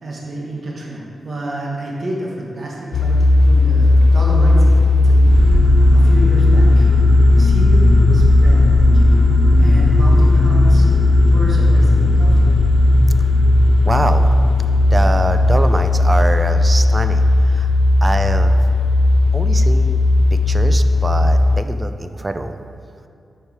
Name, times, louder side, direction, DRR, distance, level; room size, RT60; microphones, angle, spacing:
voice 1, 0.0-3.2 3.4-5.3 5.9-6.9 7.3-9.1 9.6-10.9 11.2-12.6, right 1 dB, 45° right, -3 dB, 1.2 m, -29 dB
sound 1, 2.9-21.6, left 2 dB, 85° left, 0.4 m, -14 dB
sound 2, 5.3-15.7, right 1 dB, 70° right, 1.6 m, -21 dB
voice 2, 13.8-14.3 14.9-17.7 18.0-18.6 19.3-20.0 20.3-22.6, right 2 dB, 20° right, 8 dB, 0.3 m, -23 dB
7.2 x 4.9 x 4.7 m, 2.5 s
wide cardioid pair, 135°, 0 cm